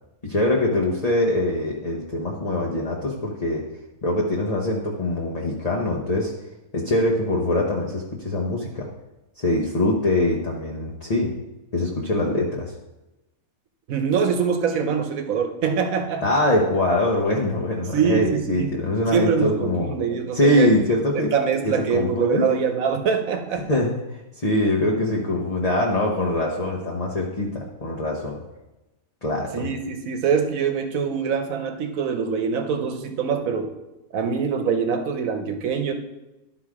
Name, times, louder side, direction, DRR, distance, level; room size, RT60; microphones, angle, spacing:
voice 1, 0.2-3.7 4.0-6.3 6.7-8.9 9.4-11.3 11.7-12.7 16.2-19.9 20.3-21.3 21.6-22.5 23.7-23.9 24.4-28.4 29.2-29.7, left 1 dB, 30° left, -3 dB, 1.0 m, -23 dB
voice 2, 13.9-16.2 17.9-18.7 19.1-20.7 21.2-23.7 29.5-33.7 34.1-35.9, right 6 dB, 70° right, 6 dB, 1.3 m, -24 dB
12.0 x 4.0 x 4.8 m, 0.99 s
omnidirectional pair, 1.5 m